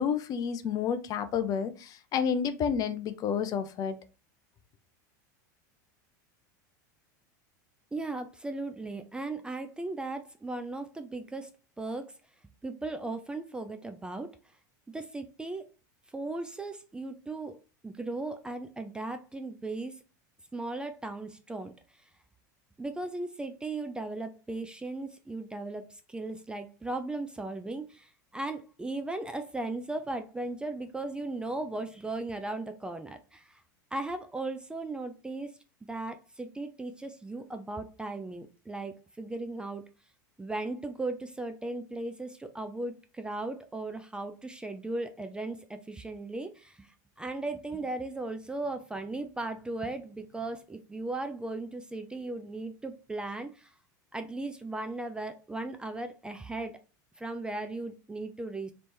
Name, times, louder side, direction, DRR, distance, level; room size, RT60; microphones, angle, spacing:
voice 1, 0.0-4.0, left 7 dB, 40° left, 10 dB, 0.6 m, -30 dB
voice 2, 7.9-11.5 11.8-12.1 12.6-14.3 14.9-15.7 16.1-17.6 17.8-20.0 20.5-21.7 22.8-33.6 33.9-35.5 35.9-39.8 40.4-53.7 54.1-56.8 57.2-58.7, right 2 dB, 10° right, 8 dB, 0.4 m, -37 dB
3.3 x 3.2 x 4.3 m, 0.33 s
supercardioid pair, 125°, 10 cm